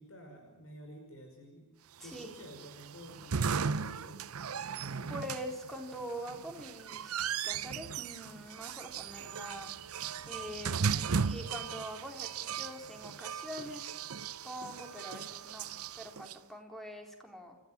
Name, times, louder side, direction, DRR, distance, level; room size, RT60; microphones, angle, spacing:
voice 1, 0.0-1.7 2.0-4.2 4.8-5.1 10.8-11.3 11.7-11.8, equal, 70° left, 4 dB, 5.4 m, -51 dB
voice 2, 2.0-2.3 5.1-7.1 7.4-9.7 10.3-10.7 11.3-13.9 14.4-17.6, equal, ahead, 3 dB, 3.7 m, -44 dB
sound 1, 2.0-16.3, right 6 dB, 85° right, 0.7 m, -37 dB
29.5 x 14.5 x 7.5 m, 0.99 s
head